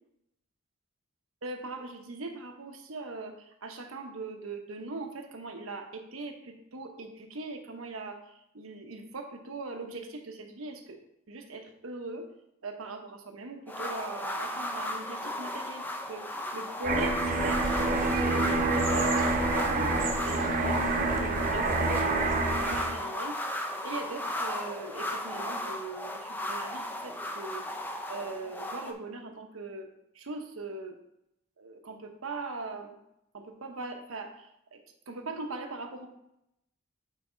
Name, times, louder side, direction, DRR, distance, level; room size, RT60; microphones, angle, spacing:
voice 1, 1.4-11.0 11.3-12.3 12.6-27.6 28.1-29.9 30.1-31.0 31.6-32.9 33.3-34.8 35.1-36.1, right 3 dB, 85° right, 4 dB, 1.0 m, -40 dB
sound 1, 13.7-28.9, left 1 dB, 10° left, 0.4 m, -35 dB
sound 2, 16.8-23.0, right 2 dB, 40° right, 0.8 m, -27 dB
8.5 x 4.1 x 3.9 m, 0.80 s
head